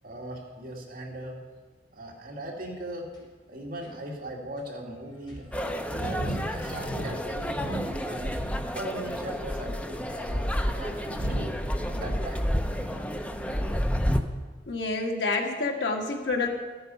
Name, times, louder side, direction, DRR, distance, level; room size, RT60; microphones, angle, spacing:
voice 1, 0.0-1.4 1.9-3.1 3.5-8.3 8.7-11.3 11.9-12.5, right 1 dB, 55° right, -1 dB, 2.4 m, -39 dB
sound 1, 3.1-3.2 3.8-3.9 4.6-4.7 5.3-8.6 8.9-9.4 10.1-13.6 13.9-14.2, right 1 dB, 30° left, 4.0 m, -38 dB
sound 2, 5.5-14.2, equal, 5° left, 0.7 m, -30 dB
voice 2, 14.7-16.6, left 3 dB, 75° left, 1 dB, 1.8 m, -28 dB
14.0 x 8.8 x 5.5 m, 1.4 s
head